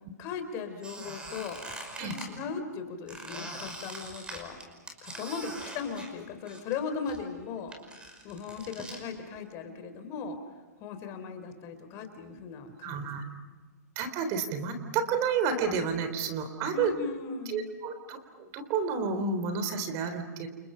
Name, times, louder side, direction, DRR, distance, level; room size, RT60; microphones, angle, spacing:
voice 1, 0.2-1.6 2.0-4.6 5.0-7.8 8.2-10.4 10.8-13.4 16.7-17.7, left 5 dB, 35° left, 7 dB, 4.1 m, -38 dB
Squeak, 0.8-2.3 3.1-6.8 7.1-9.0, right 1 dB, 10° right, 5.5 m, -43 dB
voice 2, 12.8-13.2 14.0-16.9 17.5-20.5, right 5 dB, 35° right, 8 dB, 3.8 m, -30 dB
30.0 x 29.0 x 5.8 m, 1.3 s
hypercardioid pair, 130°, 9 cm